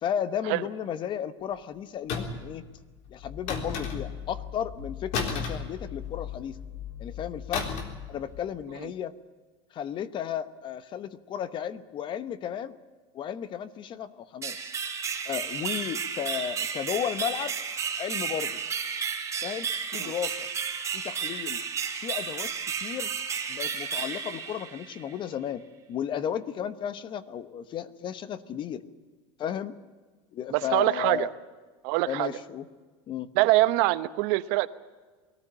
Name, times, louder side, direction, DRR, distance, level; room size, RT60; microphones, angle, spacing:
voice 1, 0.0-2.6 3.1-6.6 7.0-7.7 8.1-9.1 9.7-12.7 13.1-14.6 15.2-17.5 18.0-18.6 19.4-19.7 19.9-20.5 20.9-21.6 22.0-23.1 23.5-25.6 25.9-28.8 29.4-29.8 30.3-31.3 32.1-32.7 33.1-33.3, left 9 dB, 35° left, 15 dB, 1.1 m, -34 dB
sound 1, 2.1-2.5 3.5-4.2 5.1-6.3 7.5-8.0 8.3-8.5, left 5 dB, 55° left, 3.7 m, -33 dB
sound 2, 2.9-8.4, left 9 dB, 5° left, 4.6 m, -40 dB
sound 3, 14.4-25.1, right 6 dB, 20° right, 4.2 m, -33 dB
voice 2, 30.5-31.3 31.8-32.3 33.3-34.7, right 19 dB, 60° right, 14 dB, 1.0 m, -24 dB
21.5 x 14.5 x 10.0 m, 1.4 s
supercardioid pair, 135°, 14 cm